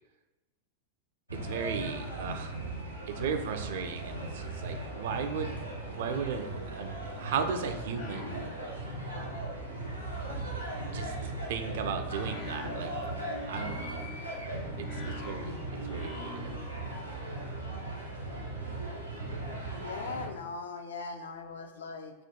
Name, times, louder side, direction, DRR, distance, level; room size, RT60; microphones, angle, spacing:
voice 1, 1.3-2.6 3.1-5.6 5.9-8.4 10.9-12.9 13.5-14.1 14.8-16.5, right 6 dB, 55° right, 8 dB, 0.3 m, -36 dB
sound 1, 1.3-20.3, right 2 dB, 90° right, 0.8 m, -38 dB
sound 2, 7.4-9.0 9.3-16.8, left 1 dB, 40° left, 0.7 m, -46 dB
voice 2, 19.7-22.1, left 4 dB, 65° left, 6 dB, 0.4 m, -40 dB
4.3 x 2.2 x 3.6 m, 1.1 s
figure-of-eight pair, 90°, 0 cm